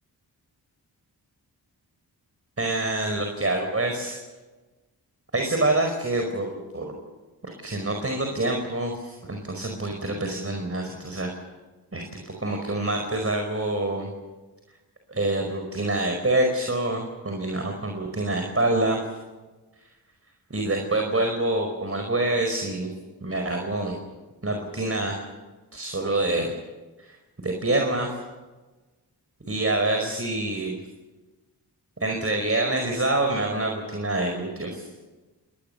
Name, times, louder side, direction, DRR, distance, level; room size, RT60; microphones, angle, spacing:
voice 1, 2.6-4.2 5.3-6.9 7.4-11.3 11.9-14.1 15.1-19.0 20.5-22.9 23.2-24.0 24.4-25.2 25.7-26.5 27.0-27.2 27.4-28.1 29.5-30.8 32.0-34.9, right 2 dB, 35° right, 3 dB, 5.0 m, -26 dB
27.5 x 20.5 x 6.8 m, 1.2 s
cardioid pair, 50°, 41 cm